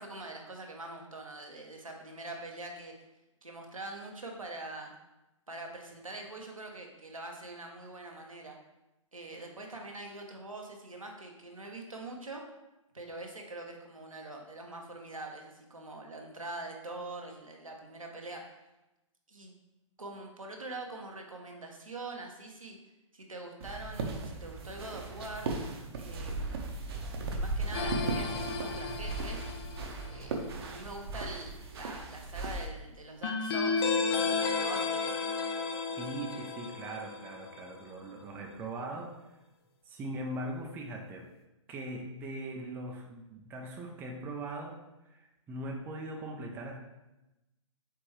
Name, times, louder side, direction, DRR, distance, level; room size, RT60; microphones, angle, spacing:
voice 1, 0.0-2.9 3.4-4.9 5.5-8.6 9.1-12.4 12.9-18.4 19.3-19.6 20.0-22.8 23.1-25.5 26.0-26.6 27.3-29.4 30.1-35.0, right 2 dB, 90° right, 1 dB, 0.8 m, -44 dB
sound 1, 23.6-32.7, right 3 dB, 50° right, 0.7 m, -37 dB
sound 2, 27.7-30.1 33.2-37.7, left 4 dB, 50° left, 0.5 m, -33 dB
voice 2, 36.0-39.3 39.9-41.3 41.7-44.7 45.1-46.8, right 1 dB, 10° right, 1 dB, 0.4 m, -40 dB
4.7 x 3.4 x 3.1 m, 0.97 s
figure-of-eight pair, 120°, 17 cm